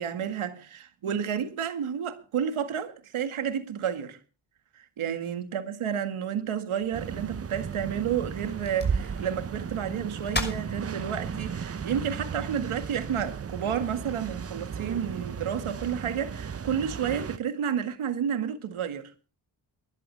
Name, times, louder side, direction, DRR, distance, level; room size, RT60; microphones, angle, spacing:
voice 1, 0.0-4.2 4.8-19.1, right 8 dB, 90° right, 1.9 m, -31 dB
sound 1, 6.8-12.8, left 1 dB, 20° left, 6.1 m, -40 dB
sound 2, 6.9-17.4, right 6 dB, 30° right, 0.6 m, -35 dB
22.0 x 11.5 x 3.3 m
cardioid pair, 55°, 48 cm